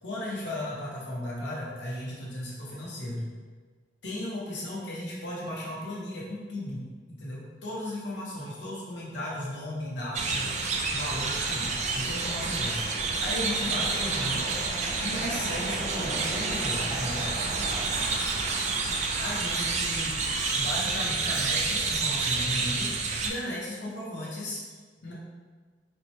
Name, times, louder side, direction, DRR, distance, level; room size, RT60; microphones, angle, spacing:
voice 1, 0.0-3.3 4.0-10.5 10.9-14.5 15.0-17.3 19.2-20.1 20.5-22.9 23.2-24.6 25.0-25.1, left 1 dB, 85° left, -5 dB, 0.9 m, -35 dB
sound 1, 10.1-23.3, right 4 dB, 40° right, 0.3 m, -29 dB
4.3 x 2.1 x 2.9 m, 1.5 s
head